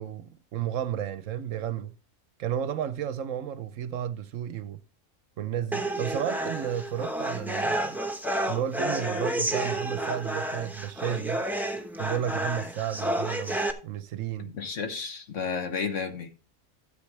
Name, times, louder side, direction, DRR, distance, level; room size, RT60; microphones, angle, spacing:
voice 1, 0.0-1.9 2.4-4.8 5.4-8.0 8.5-11.4 12.0-13.6 13.8-14.5, right 10 dB, 70° right, 0.9 m, -32 dB
sound 1, 5.7-13.7, right 1 dB, ahead, 0.8 m, -30 dB
voice 2, 14.4-16.3, left 5 dB, 60° left, 1.5 m, -32 dB
13.5 x 7.6 x 3.2 m
omnidirectional pair, 1.5 m